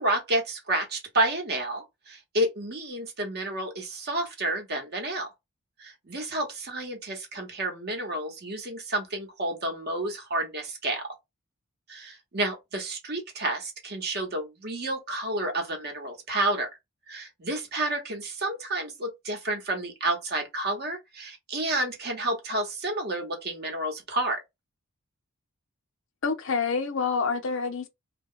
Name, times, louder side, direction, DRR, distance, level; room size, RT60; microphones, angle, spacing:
voice 1, 0.0-5.3 5.8-11.0 11.9-16.7 17.1-24.4, right 1 dB, 50° right, 0.9 m, -30 dB
voice 2, 26.2-27.9, left 5 dB, 60° left, 0.6 m, -27 dB
2.2 x 2.1 x 3.6 m
head